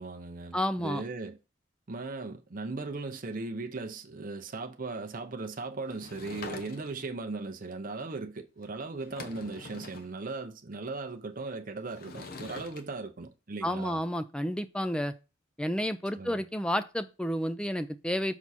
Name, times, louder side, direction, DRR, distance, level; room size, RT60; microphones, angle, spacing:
voice 1, 0.0-1.4 1.9-14.0 16.2-16.4, right 3 dB, 45° right, 0.7 m, -38 dB
voice 2, 0.5-1.0 13.6-15.1 15.6-18.3, equal, 5° left, 0.4 m, -31 dB
Sliding door / Wood, 5.9-7.1 8.6-8.7 9.0-10.1 11.9-12.8, left 3 dB, 50° left, 0.8 m, -44 dB
6.0 x 4.7 x 4.2 m
head